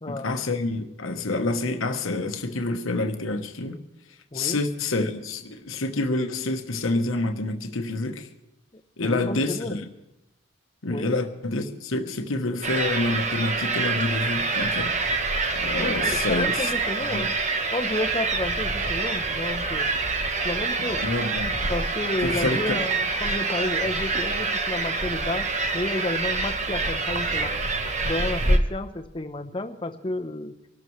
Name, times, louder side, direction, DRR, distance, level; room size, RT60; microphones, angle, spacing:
voice 1, 0.1-3.8 4.3-8.3 9.0-9.8 10.8-15.2 15.5-16.7 17.1-17.3 21.0-21.6 22.2-22.8, left 2 dB, 80° left, 5 dB, 1.1 m, -28 dB
voice 2, 8.7-9.8 10.9-11.2 15.8-17.3 17.7-19.9 20.4-21.0 21.7-25.5 25.7-27.5 28.0-30.6, left 2 dB, 25° left, 6 dB, 0.8 m, -31 dB
sound 1, 12.6-28.6, right 3 dB, 35° right, 1.0 m, -26 dB
24.5 x 12.5 x 3.2 m, 0.91 s
head